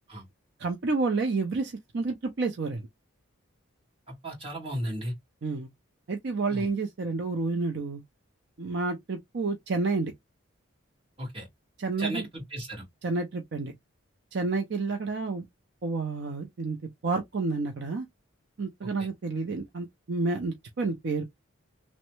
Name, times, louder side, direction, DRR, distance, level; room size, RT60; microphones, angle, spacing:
voice 1, 0.6-2.9 5.4-5.7 6.1-8.0 8.6-10.1 11.8-12.3 13.0-13.7 14.3-15.5 15.8-16.8 17.0-18.1 18.6-21.2, right 3 dB, 55° right, 0.5 m, -30 dB
voice 2, 4.1-5.1 6.5-6.7 11.2-11.5 12.0-12.8 19.0-19.1, right 1 dB, 25° right, 1.6 m, -35 dB
3.1 x 2.0 x 3.0 m
head